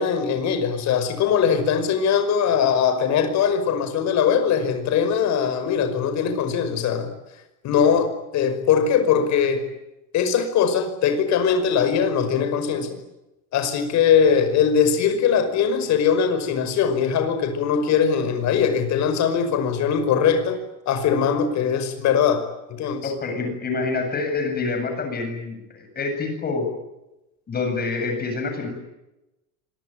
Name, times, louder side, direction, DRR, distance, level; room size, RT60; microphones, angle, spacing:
voice 1, 0.0-7.1 7.6-9.6 10.1-13.0 13.5-20.6 20.9-23.1, left 7 dB, 40° left, 9 dB, 5.5 m, -21 dB
voice 2, 23.0-26.7 27.5-28.7, left 3 dB, 20° left, 5 dB, 7.9 m, -27 dB
26.5 x 24.5 x 9.0 m, 0.94 s
cardioid pair, 165°, 44 cm